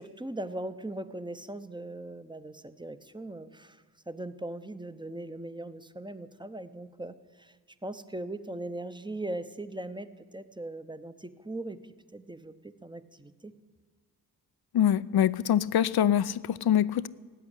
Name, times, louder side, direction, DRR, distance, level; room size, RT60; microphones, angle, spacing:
voice 1, 0.0-7.5 7.8-11.8 12.1-13.5, right 1 dB, 10° right, 0.8 m, -39 dB
voice 2, 14.7-17.1, left 10 dB, 70° left, 0.6 m, -24 dB
17.0 x 8.5 x 10.0 m
cardioid pair, 75°, 40 cm